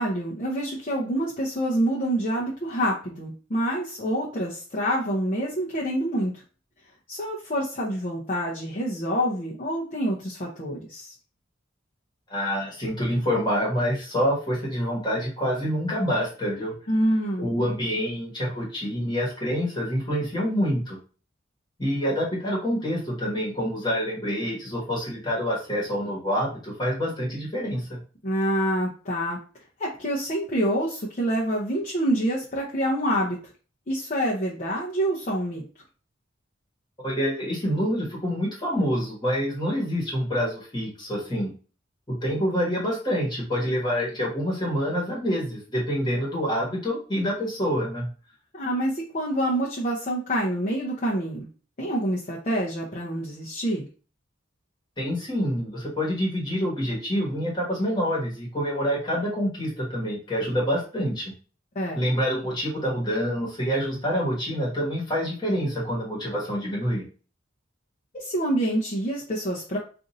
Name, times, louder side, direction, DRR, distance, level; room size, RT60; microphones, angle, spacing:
voice 1, 0.0-6.4 7.1-11.1 16.9-17.5 28.2-29.4 29.8-33.4 33.9-35.6 48.5-51.5 51.8-53.9 61.8-62.0 68.1-69.8, equal, 35° left, -5 dB, 0.6 m, -27 dB
voice 2, 12.3-16.7 17.4-21.0 21.8-28.0 37.0-41.5 42.1-48.1 55.0-61.3 61.9-67.0, equal, 20° left, -3 dB, 1.3 m, -27 dB
2.6 x 2.5 x 4.0 m, 0.37 s
head